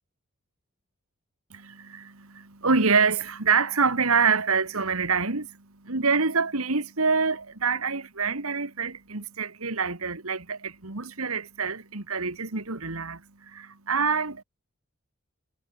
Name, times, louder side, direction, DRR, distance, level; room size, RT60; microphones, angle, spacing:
voice 1, 1.5-14.4, right 5 dB, 85° right, 2.3 m, -26 dB
head